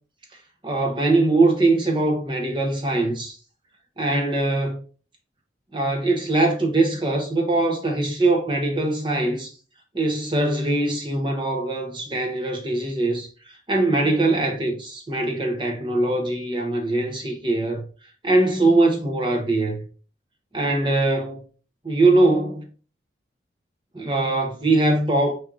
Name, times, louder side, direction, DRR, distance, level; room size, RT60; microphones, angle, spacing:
voice 1, 0.6-3.4 4.0-4.8 5.7-9.5 9.9-17.8 18.2-19.8 20.5-21.4 21.8-22.7 23.9-25.3, right 2 dB, 25° right, 0.8 m, -22 dB
4.7 x 4.4 x 2.4 m
head